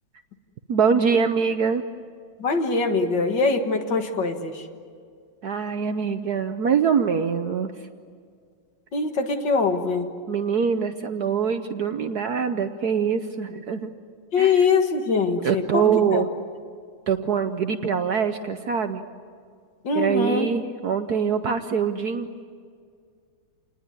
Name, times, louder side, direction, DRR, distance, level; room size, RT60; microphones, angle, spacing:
voice 1, 0.7-1.8 5.4-7.7 10.3-13.9 14.4-14.7 15.4-16.3 17.1-19.0 19.9-22.4, right 6 dB, 60° right, 8 dB, 1.1 m, -24 dB
voice 2, 2.4-4.6 8.9-10.1 14.3-15.8 16.1-16.2 19.8-20.5, left 4 dB, 60° left, 5 dB, 2.2 m, -23 dB
28.0 x 20.0 x 9.7 m, 2.1 s
omnidirectional pair, 2.3 m